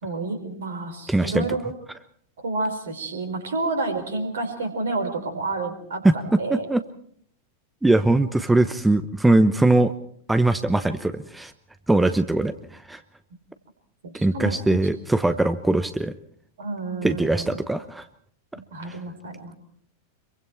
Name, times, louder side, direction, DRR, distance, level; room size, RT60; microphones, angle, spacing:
voice 1, 0.0-1.6 2.4-6.6 14.0-14.8 16.6-17.6 18.5-19.5, right 3 dB, 65° right, 8 dB, 4.3 m, -30 dB
voice 2, 1.1-1.5 6.0-6.1 6.5-6.8 7.8-9.9 10.3-11.5 11.9-13.0 14.1-16.1 17.0-18.1 18.8-19.0, right 2 dB, 5° right, 11 dB, 0.9 m, -21 dB
26.0 x 23.5 x 4.5 m, 0.62 s
figure-of-eight pair, 90°, 0 cm